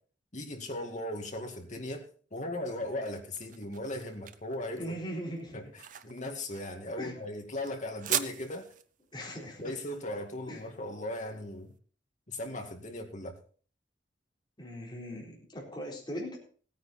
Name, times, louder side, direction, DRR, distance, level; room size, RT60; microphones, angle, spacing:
voice 1, 0.3-2.0 2.3-4.8 5.5-8.7 9.6-11.7 12.3-13.3, left 1 dB, 40° left, 3 dB, 2.1 m, -38 dB
sound 1, 2.5-11.6, right 10 dB, 45° right, 0.7 m, -40 dB
voice 2, 4.7-5.6 7.0-7.2 9.1-9.7 10.5-10.6 14.6-16.4, equal, 25° left, -2 dB, 4.1 m, -39 dB
16.5 x 9.6 x 4.3 m, 0.44 s
head